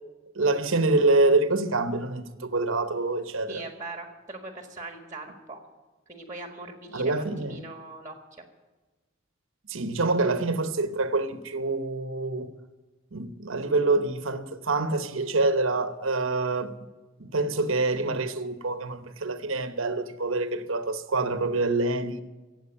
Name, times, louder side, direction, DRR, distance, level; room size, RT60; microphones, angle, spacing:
voice 1, 0.3-3.6 6.9-7.6 9.7-12.5 13.1-16.7 17.2-22.2, right 2 dB, 70° right, 1.0 m, -26 dB
voice 2, 3.5-5.6 6.1-8.4, right 2 dB, 15° right, 1.6 m, -41 dB
17.5 x 8.0 x 9.8 m
head